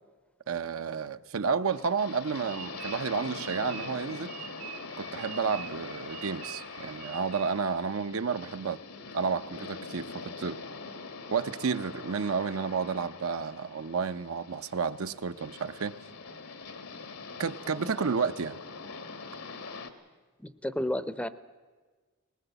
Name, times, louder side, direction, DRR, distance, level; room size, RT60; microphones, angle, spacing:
voice 1, 0.5-4.3 5.0-8.8 9.1-10.6 11.3-15.9 17.4-18.6, right 5 dB, 65° right, 11 dB, 0.7 m, -31 dB
sound 1, 1.7-19.9, left 4 dB, 80° left, 1.8 m, -43 dB
sound 2, 2.5-7.8, right 10 dB, 85° right, 1.3 m, -45 dB
voice 2, 17.7-18.1 20.4-21.3, left 1 dB, 5° left, 14 dB, 0.6 m, -33 dB
20.0 x 18.5 x 8.0 m, 1.4 s
head